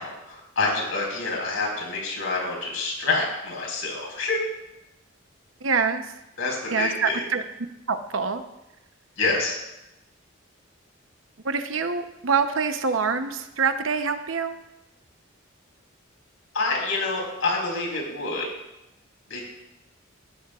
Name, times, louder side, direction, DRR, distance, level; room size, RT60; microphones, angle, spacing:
voice 1, 0.0-4.4 6.4-7.2 9.2-9.6 16.5-18.5 19.3-19.4, left 3 dB, 80° left, -1 dB, 4.7 m, -27 dB
voice 2, 5.6-6.0 6.7-7.4 7.9-8.4 11.4-14.5, right 5 dB, 70° right, 8 dB, 0.9 m, -25 dB
18.5 x 12.5 x 2.4 m, 0.92 s
head